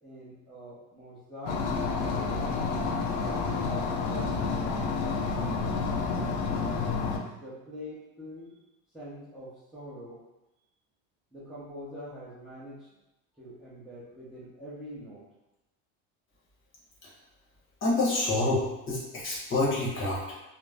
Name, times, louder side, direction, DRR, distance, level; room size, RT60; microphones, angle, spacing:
voice 1, 0.0-1.6 2.1-3.0 3.3-6.7 7.1-8.6 8.9-10.2 11.3-12.9 13.4-15.2, equal, ahead, -9 dB, 0.6 m, -44 dB
sound 1, 1.5-7.2, left 4 dB, 60° left, 0.5 m, -29 dB
voice 2, 17.8-20.3, left 2 dB, 35° left, -5 dB, 0.8 m, -27 dB
2.4 x 2.0 x 3.3 m, 0.96 s
cardioid pair, 125°, 35 cm